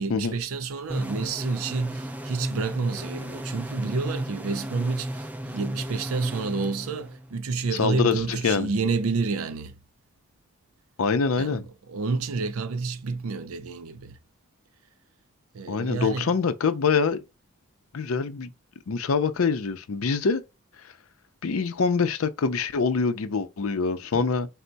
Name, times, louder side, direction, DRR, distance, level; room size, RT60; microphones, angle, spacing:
voice 1, 0.0-9.8 11.4-11.6 11.9-14.2 15.5-16.3 24.1-24.3, right 4 dB, 80° right, 0.5 m, -29 dB
sound 1, 0.9-7.4, equal, 5° right, 0.3 m, -35 dB
voice 2, 7.7-8.7 11.0-11.6 15.7-17.2 17.9-18.5 18.9-20.4 21.4-24.5, left 5 dB, 75° left, 0.5 m, -25 dB
4.4 x 2.1 x 3.9 m
head